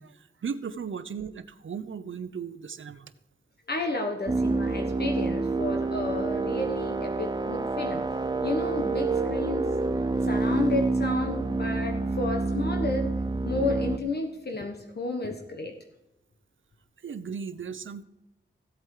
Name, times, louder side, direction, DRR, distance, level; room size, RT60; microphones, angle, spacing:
voice 1, 0.0-3.1 17.0-18.0, right 6 dB, 65° right, 12 dB, 0.8 m, -36 dB
voice 2, 3.7-8.0 8.4-9.7 10.3-13.1 13.4-15.7, left 3 dB, 50° left, 3 dB, 1.3 m, -32 dB
sound 1, 4.3-14.0, right 3 dB, 20° right, 0.7 m, -28 dB
15.5 x 8.1 x 4.9 m, 0.92 s
wide cardioid pair, 105°, 21 cm